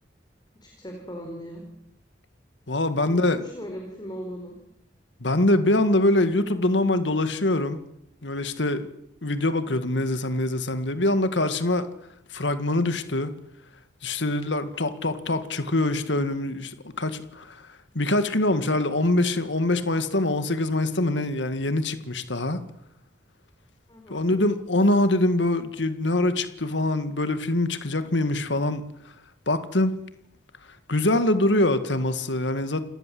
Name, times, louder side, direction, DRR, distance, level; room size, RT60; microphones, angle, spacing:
voice 1, 0.5-1.6 3.1-4.6 23.9-24.2, equal, 25° left, 4.5 m, -38 dB
voice 2, 2.7-3.4 5.2-7.8 8.2-8.9 9.2-11.9 12.3-13.3 14.0-17.6 18.0-22.6 24.1-28.8 29.5-29.9 30.9-32.8, left 1 dB, 80° left, 2.0 m, -24 dB
29.0 x 18.5 x 7.8 m
head